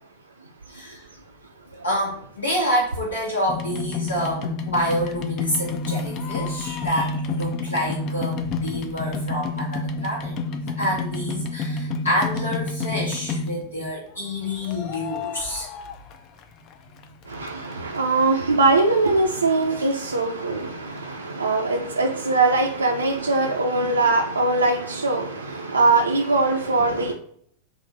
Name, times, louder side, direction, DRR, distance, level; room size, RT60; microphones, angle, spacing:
voice 1, 1.8-10.3 10.8-15.7, equal, 80° left, 1.3 m, -27 dB
sound 1, 3.5-13.8 14.6-16.7 17.0-18.0 18.5-18.6 18.8-18.9 19.1-19.2 19.6-19.7 19.9-20.0, left 3 dB, 35° left, 0.4 m, -29 dB
voice 2, 17.3-27.1, right 3 dB, 80° right, 0.4 m, -21 dB
3.7 x 2.6 x 3.8 m
figure-of-eight pair, 90°, 0 cm